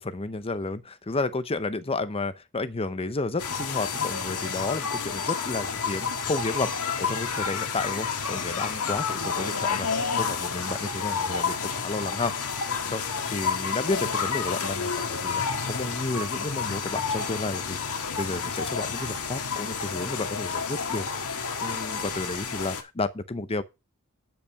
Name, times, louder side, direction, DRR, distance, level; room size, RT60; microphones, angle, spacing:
voice 1, 0.0-12.3 12.9-23.6, left 3 dB, 25° left, 0.8 m, -32 dB
sound 1, 3.4-22.8, left 5 dB, 80° left, 1.6 m, -30 dB
9.0 x 5.6 x 5.7 m
head